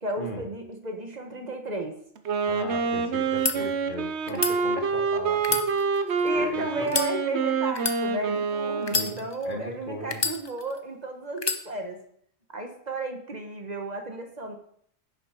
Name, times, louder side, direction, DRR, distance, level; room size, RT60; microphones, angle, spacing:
voice 1, 0.0-2.0 3.6-3.7 4.3-4.4 4.7-4.9 6.2-12.0 12.5-14.6, right 2 dB, 40° right, 4 dB, 1.4 m, -33 dB
Wind instrument woodwind instrument, 2.2-9.3, right 5 dB, 90° right, 1.1 m, -27 dB
voice 2, 2.5-5.6 5.8-7.0 8.9-10.2, left 2 dB, 50° left, 2 dB, 1.8 m, -38 dB
sound 1, 3.2-3.6 4.3-4.5 5.4-6.3 6.8-7.1 7.7-8.0 8.8-9.5 10.1-10.8 11.4-11.6, left 4 dB, 30° left, 0.7 m, -28 dB
11.0 x 7.3 x 4.4 m, 0.66 s
omnidirectional pair, 1.1 m